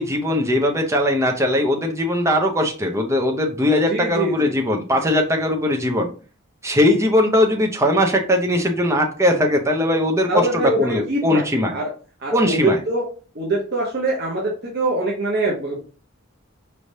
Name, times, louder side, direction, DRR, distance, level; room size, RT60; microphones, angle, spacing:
voice 1, 0.0-6.1 6.6-11.8 12.3-12.8, left 1 dB, 15° right, 3 dB, 0.7 m, -20 dB
voice 2, 3.9-4.5 10.3-11.4 11.7-11.9 12.2-13.0 13.3-15.8, right 2 dB, 55° right, -3 dB, 0.9 m, -23 dB
4.7 x 3.3 x 2.7 m, 0.37 s
head